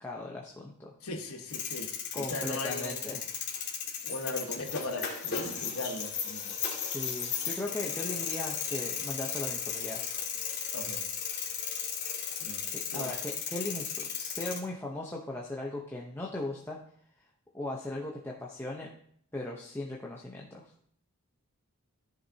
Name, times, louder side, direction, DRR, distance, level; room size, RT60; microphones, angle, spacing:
voice 1, 0.0-0.9 2.1-3.2 6.8-10.0 12.6-16.8 17.5-18.9 19.3-20.7, left 2 dB, 10° left, -3 dB, 0.9 m, -38 dB
voice 2, 1.0-3.2 4.0-6.5 10.7-11.0 12.4-13.1, left 2 dB, 75° left, 3 dB, 1.4 m, -39 dB
sound 1, 1.5-14.6, left 7 dB, 55° left, 2.1 m, -35 dB
13.5 x 6.5 x 2.8 m, 0.64 s
head